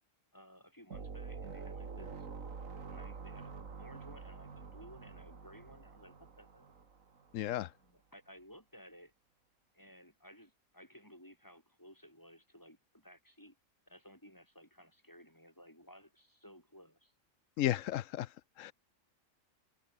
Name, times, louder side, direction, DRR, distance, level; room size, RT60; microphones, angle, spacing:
voice 1, 0.3-2.3 2.9-6.7 7.4-9.1 9.7-13.5 13.9-17.1, equal, 15° left, 6.3 m, -57 dB
sound 1, 0.9-7.4, right 5 dB, 85° right, 2.5 m, -47 dB
voice 2, 7.3-7.7 17.6-18.7, left 13 dB, 80° left, 1.0 m, -34 dB
open air
omnidirectional pair, 1.3 m